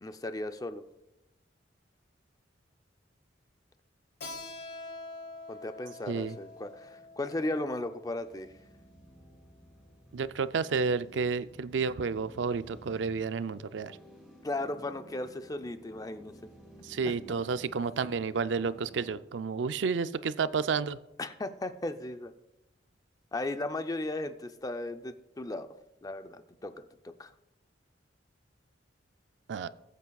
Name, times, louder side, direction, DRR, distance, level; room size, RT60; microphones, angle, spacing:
voice 1, 0.0-0.8 5.5-8.5 14.4-16.3 17.1-17.2 21.2-22.3 23.3-25.7 26.0-26.7 27.0-27.3, left 2 dB, 20° left, 9 dB, 0.5 m, -36 dB
Keyboard (musical), 4.2-9.5, left 2 dB, 60° left, 1.6 m, -46 dB
sound 1, 5.9-19.2, equal, ahead, 4.5 m, -55 dB
voice 2, 10.1-14.0 16.8-21.0 29.5-29.7, right 5 dB, 70° right, 14 dB, 0.4 m, -31 dB
20.5 x 8.3 x 2.3 m, 0.96 s
head